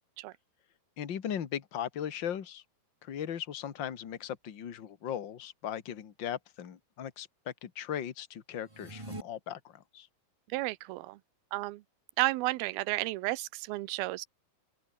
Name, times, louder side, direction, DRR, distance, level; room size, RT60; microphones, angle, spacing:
voice 1, 1.0-2.6 3.0-10.1, left 9 dB, 50° left, 1.5 m, -38 dB
sound 1, 8.6-9.2, right 2 dB, 10° right, 1.4 m, -42 dB
voice 2, 10.5-11.2 11.5-11.8 12.2-14.3, right 19 dB, 80° right, 2.5 m, -32 dB
open air
omnidirectional pair, 4.6 m